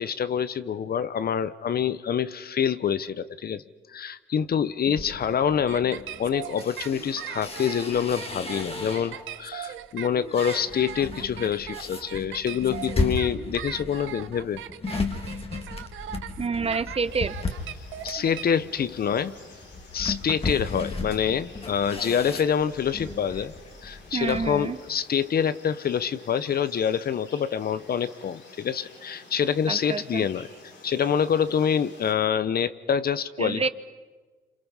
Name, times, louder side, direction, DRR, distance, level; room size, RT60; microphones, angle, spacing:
voice 1, 0.0-3.6 3.9-14.6 18.0-19.3 19.9-23.5 23.8-30.5 30.8-33.7, left 8 dB, 50° left, 14 dB, 0.9 m, -26 dB
sound 1, 4.9-9.4 9.8-24.6, left 3 dB, 30° left, 2.4 m, -35 dB
sound 2, 5.7-18.4, right 11 dB, 80° right, 1.1 m, -39 dB
voice 2, 16.4-17.4 24.1-24.8 29.7-30.3 33.4-33.7, right 4 dB, 30° right, 13 dB, 1.0 m, -28 dB
sound 3, 17.0-32.1, left 3 dB, 70° left, 7.8 m, -51 dB
27.5 x 27.5 x 5.7 m, 1.3 s
cardioid pair, 90°, 20 cm